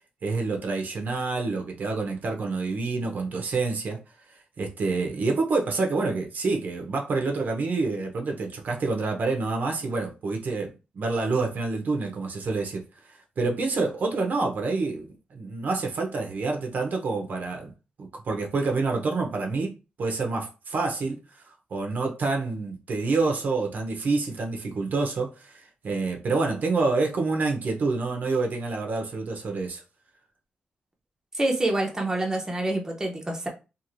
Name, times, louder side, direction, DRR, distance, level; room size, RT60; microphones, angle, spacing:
voice 1, 0.2-4.0 4.6-17.7 18.0-21.4 21.7-29.8, right 3 dB, 60° right, 0.7 m, -27 dB
voice 2, 31.3-33.5, right 1 dB, 15° right, 0.6 m, -26 dB
2.9 x 2.5 x 2.5 m
wide cardioid pair, 115°, 3 cm